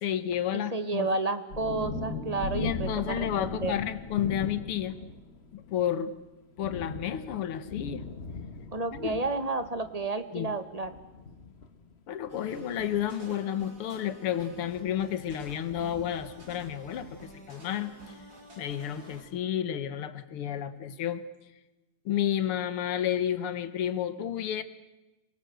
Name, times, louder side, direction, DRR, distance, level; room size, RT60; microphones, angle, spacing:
voice 1, 0.0-1.1 2.5-5.0 5.5-6.1 6.6-8.0 8.9-9.2 10.3-10.5 12.1-17.1 17.5-17.9 18.6-21.2 22.1-24.6, left 10 dB, 90° left, 13 dB, 2.1 m, -31 dB
voice 2, 0.5-2.9 3.2-3.7 8.7-10.9, right 3 dB, 20° right, 10 dB, 1.2 m, -31 dB
Thunder, 0.9-2.1 2.4-17.7, left 5 dB, 35° left, 1.4 m, -44 dB
sound 1, 1.5-5.7, left 2 dB, 50° left, 4.6 m, -38 dB
sound 2, 12.3-19.2, right 1 dB, 45° right, 4.7 m, -49 dB
27.0 x 19.0 x 7.9 m, 1.0 s
omnidirectional pair, 2.3 m